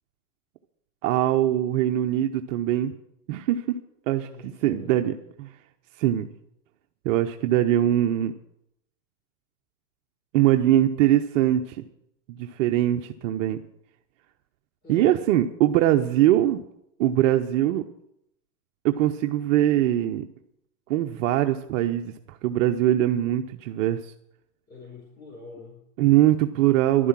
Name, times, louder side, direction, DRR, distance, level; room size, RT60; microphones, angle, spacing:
voice 1, 1.0-2.9 3.3-3.8 4.1-5.1 5.4-5.5 6.0-6.3 7.0-8.3 10.3-11.8 12.4-13.6 14.9-16.6 17.0-17.8 18.8-20.2 20.9-24.1 26.0-27.1, right 13 dB, 55° right, 6 dB, 0.9 m, -22 dB
voice 2, 4.2-5.2 14.8-15.2 24.7-25.8, left 4 dB, 20° left, -3 dB, 4.3 m, -45 dB
11.5 x 10.0 x 7.5 m, 0.79 s
hypercardioid pair, 125°, 45 cm